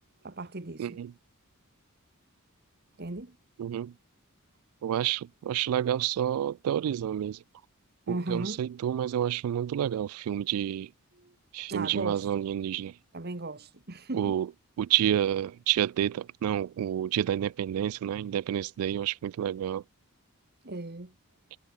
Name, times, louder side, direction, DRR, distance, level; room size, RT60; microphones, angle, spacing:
voice 1, 0.2-1.0 3.0-3.3 8.1-8.6 11.1-11.3 11.7-12.4 13.1-14.3 20.6-21.1, right 2 dB, 50° right, 1.4 m, -37 dB
voice 2, 0.8-1.1 3.6-3.9 4.8-7.4 8.1-10.9 11.5-12.9 14.1-14.5 14.8-19.8, right 10 dB, 85° right, 0.3 m, -29 dB
head